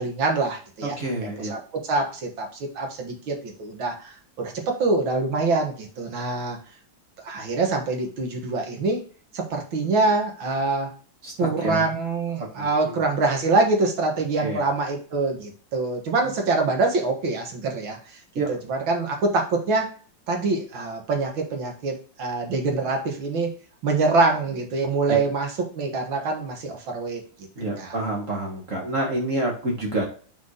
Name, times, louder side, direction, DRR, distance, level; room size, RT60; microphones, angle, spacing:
voice 1, 0.0-1.0 1.5-6.6 7.2-9.0 9.3-10.9 11.4-18.2 18.5-19.9 20.3-23.5 23.8-25.5 25.8-27.2 27.8-27.9, right 3 dB, 85° right, 2 dB, 2.4 m, -25 dB
voice 2, 0.8-1.5 11.2-11.9 12.4-13.0 14.4-14.6 18.4-18.5 25.1-25.2 27.6-30.0, right 2 dB, 40° right, -1 dB, 2.1 m, -28 dB
5.8 x 4.8 x 3.9 m, 0.41 s
omnidirectional pair, 2.1 m